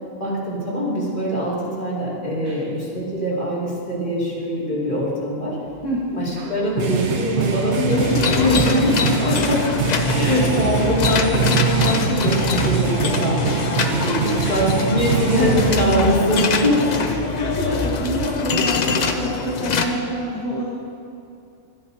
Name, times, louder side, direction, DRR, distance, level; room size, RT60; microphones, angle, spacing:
voice 1, 0.2-5.6 6.2-9.6 10.0-17.0, equal, 40° left, -8 dB, 2.7 m, -22 dB
voice 2, 5.8-6.2 8.4-8.5 10.1-10.4 14.4-14.6 16.9-20.6, equal, 20° left, -6 dB, 1.2 m, -27 dB
sound 1, 6.4-15.8, right 7 dB, 60° right, 1.1 m, -24 dB
sound 2, 7.9-19.9, left 5 dB, 60° left, 0.4 m, -24 dB
sound 3, 9.3-9.6 9.9-14.0 14.4-15.6 15.9-16.0, left 5 dB, 85° left, 1.2 m, -35 dB
12.5 x 10.5 x 2.8 m, 2.5 s
omnidirectional pair, 1.4 m